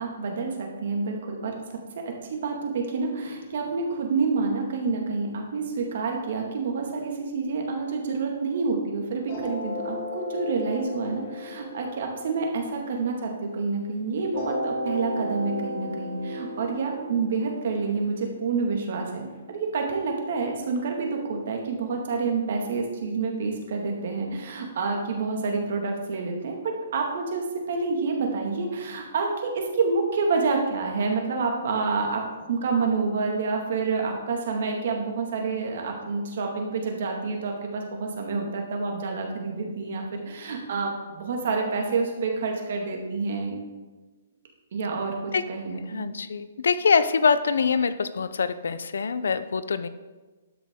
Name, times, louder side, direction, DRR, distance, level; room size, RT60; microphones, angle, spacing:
voice 1, 0.0-1.5 2.0-43.6 44.7-46.1, right 4 dB, 55° right, 2 dB, 1.9 m, -28 dB
sound 1, 9.3-13.7 14.3-19.3, left 2 dB, 40° left, 3.3 m, -35 dB
voice 2, 45.9-49.9, left 5 dB, 80° left, 13 dB, 0.6 m, -24 dB
13.0 x 6.1 x 3.7 m, 1.3 s
hypercardioid pair, 160°, 0 cm